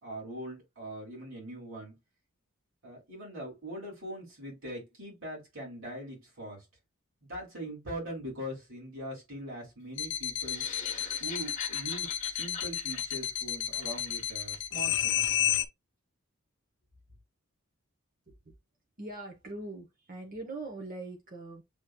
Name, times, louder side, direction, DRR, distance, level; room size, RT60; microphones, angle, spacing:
voice 1, 0.0-1.9 2.8-6.6 7.3-10.7 11.2-15.4, right 1 dB, 60° right, 3.2 m, -42 dB
sound 1, 10.0-15.7, left 11 dB, 55° left, 0.6 m, -31 dB
sound 2, 10.4-14.6, left 6 dB, 35° left, 1.1 m, -44 dB
voice 2, 18.3-18.6 19.0-21.6, right 2 dB, 40° right, 1.1 m, -42 dB
7.4 x 3.0 x 2.3 m
head